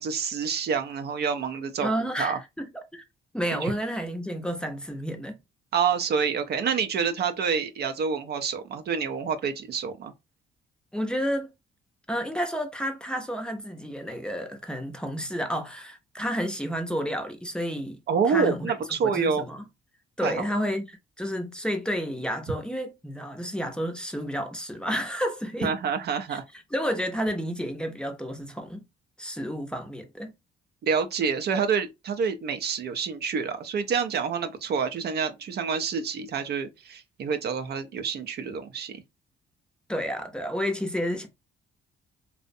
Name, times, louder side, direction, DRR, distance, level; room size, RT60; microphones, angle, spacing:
voice 1, 0.0-2.4 3.5-3.7 5.7-10.1 18.1-19.4 20.2-20.5 25.6-26.4 30.8-39.0, right 6 dB, 55° right, 0.4 m, -27 dB
voice 2, 1.8-3.0 3.3-5.4 10.9-11.5 12.1-18.0 18.2-18.7 19.0-19.6 20.2-25.7 26.3-26.4 26.7-28.8 29.2-30.3 39.9-41.3, equal, 5° left, 0.5 m, -31 dB
2.5 x 2.0 x 2.5 m
cardioid pair, 90°, 20 cm